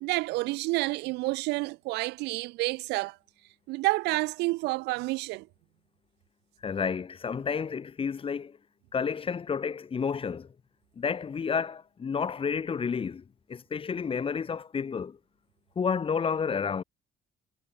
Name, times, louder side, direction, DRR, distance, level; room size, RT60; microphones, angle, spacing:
voice 1, 0.0-3.2 3.7-5.5, right 22 dB, 90° right, 0.6 m, -29 dB
voice 2, 6.6-8.6 8.9-10.5 11.0-15.2 15.8-16.8, left 6 dB, 30° left, 2.0 m, -30 dB
cardioid pair, 110°, 17 cm